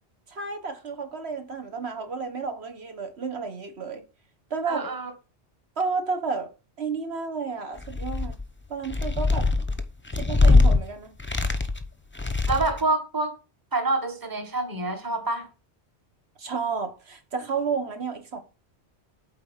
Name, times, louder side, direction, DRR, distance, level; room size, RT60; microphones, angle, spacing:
voice 1, 0.3-4.0 4.5-4.9 5.8-6.5 6.8-8.3 8.7-9.5 10.2-11.1 16.4-18.4, right 5 dB, 75° right, 1.6 m, -31 dB
voice 2, 4.7-5.1 12.5-13.4 13.7-15.5, right 2 dB, 20° right, 1.3 m, -27 dB
sound 1, 7.8-8.4 8.8-10.8 11.2-11.8 12.1-12.8, left 3 dB, 10° left, 0.7 m, -21 dB
8.6 x 4.2 x 7.2 m
omnidirectional pair, 1.1 m